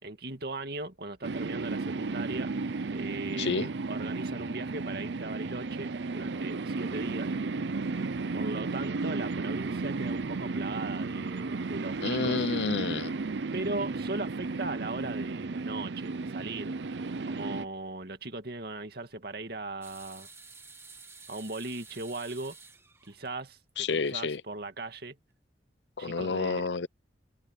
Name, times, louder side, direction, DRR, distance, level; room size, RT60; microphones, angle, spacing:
voice 1, 0.0-2.5 2.9-7.3 8.3-12.5 13.5-16.8 17.3-20.3 21.3-22.6 23.1-25.2 26.0-26.7, right 2 dB, 60° right, 2.2 m, -38 dB
sound 1, 1.2-17.6, right 3 dB, 80° right, 0.6 m, -34 dB
voice 2, 3.4-3.7 12.0-13.1 23.8-24.4 26.0-26.9, left 4 dB, 80° left, 0.7 m, -30 dB
sound 2, 19.8-23.7 24.1-24.2 25.3-25.4, right 4 dB, 15° right, 1.6 m, -51 dB
head